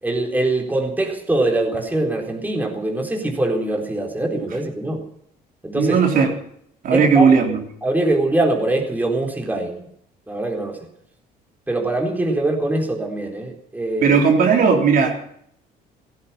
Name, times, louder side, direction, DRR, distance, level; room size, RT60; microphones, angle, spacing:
voice 1, 0.0-5.1 5.6-6.0 6.9-7.3 7.8-9.9 10.3-10.8 11.7-14.2, right 2 dB, 10° right, 1 dB, 4.0 m, -23 dB
voice 2, 5.7-6.3 6.8-7.6 14.0-15.4, right 5 dB, 55° right, 2 dB, 3.7 m, -16 dB
16.5 x 14.5 x 5.9 m, 0.68 s
cardioid pair, 110°, 17 cm